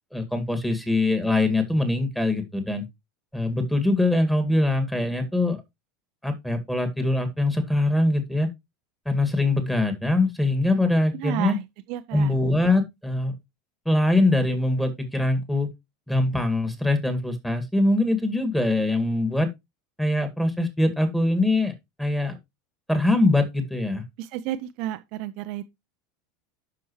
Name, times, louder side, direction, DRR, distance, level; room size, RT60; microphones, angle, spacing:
voice 1, 0.1-2.8 3.3-5.6 6.2-8.5 9.1-11.6 12.1-13.3 13.9-15.7 16.1-19.5 20.0-21.7 22.0-22.4 22.9-24.0, left 2 dB, 5° left, 2.1 m, -23 dB
voice 2, 11.1-11.6 11.9-12.3 24.2-25.7, right 13 dB, 50° right, 0.6 m, -31 dB
11.5 x 5.7 x 3.1 m
figure-of-eight pair, 75°, 0 cm